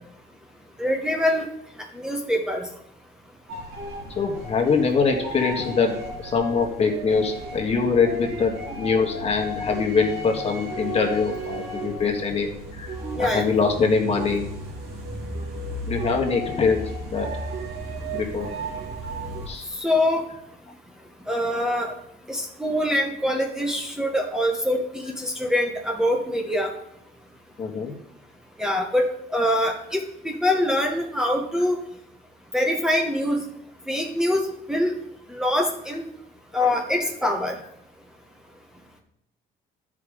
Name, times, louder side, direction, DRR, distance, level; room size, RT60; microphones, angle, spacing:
voice 1, 0.8-1.5 1.9-2.7 13.2-13.5 19.8-20.2 21.3-21.9 22.3-26.7 28.6-30.0 30.2-31.8 32.5-33.4 33.9-34.4 34.7-35.0 35.3-36.0 36.5-37.6, left 1 dB, 5° right, 0 dB, 1.2 m, -24 dB
sound 1, 3.5-19.5, right 1 dB, 70° right, 2.5 m, -34 dB
voice 2, 4.1-5.9 6.2-12.5 12.8-12.9 13.2-14.5 15.9-17.3 18.1-18.5 19.5-19.6 27.6-27.9 36.6-36.7, left 5 dB, 40° left, 1 dB, 1.7 m, -23 dB
11.0 x 5.0 x 5.1 m, 0.76 s
cardioid pair, 110°, 17 cm